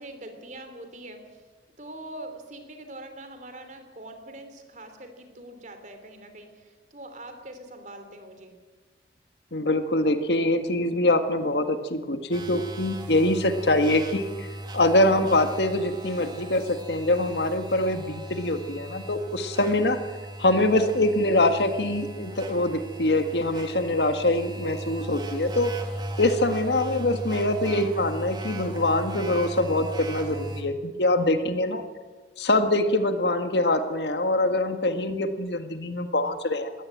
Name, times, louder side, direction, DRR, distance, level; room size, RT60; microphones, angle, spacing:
voice 1, 0.0-1.4 1.8-8.5, right 1 dB, 45° right, 7 dB, 3.3 m, -43 dB
voice 2, 9.5-14.5 14.7-20.0 20.4-25.7 26.2-31.8 32.4-36.7, left 1 dB, 75° left, 8 dB, 1.7 m, -24 dB
sound 1, 12.3-30.6, right 1 dB, 25° right, 2.1 m, -37 dB
20.5 x 17.0 x 8.9 m, 1.3 s
head